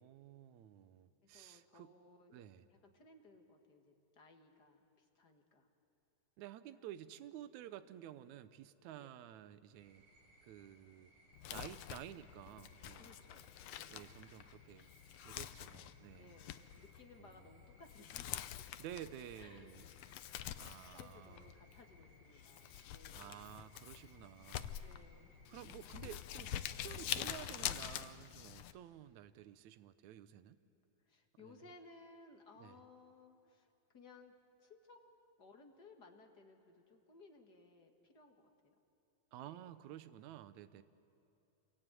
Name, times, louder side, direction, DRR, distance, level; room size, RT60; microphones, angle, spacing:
voice 1, 0.0-1.9 2.3-2.7 6.4-10.0 10.4-11.1 11.5-13.2 13.9-14.9 15.2-16.4 17.2-17.3 18.8-19.8 20.6-21.5 23.1-24.8 25.5-30.6 31.4-31.6 32.6-32.8 39.3-40.8, right 11 dB, 70° right, 13 dB, 2.0 m, -52 dB
voice 2, 1.2-5.7 8.9-9.2 13.0-14.1 16.2-18.7 19.3-23.7 24.8-25.4 31.0-33.7 33.9-34.3 34.6-35.0 35.4-38.7 39.4-39.7, left 3 dB, 35° left, 4 dB, 1.9 m, -61 dB
sound 1, 9.7-26.7, right 1 dB, 40° right, 7.3 m, -67 dB
Crumpling crinkling, 11.3-28.7, left 11 dB, 80° left, 1.5 m, -46 dB
27.5 x 23.0 x 9.2 m, 2.9 s
omnidirectional pair, 3.8 m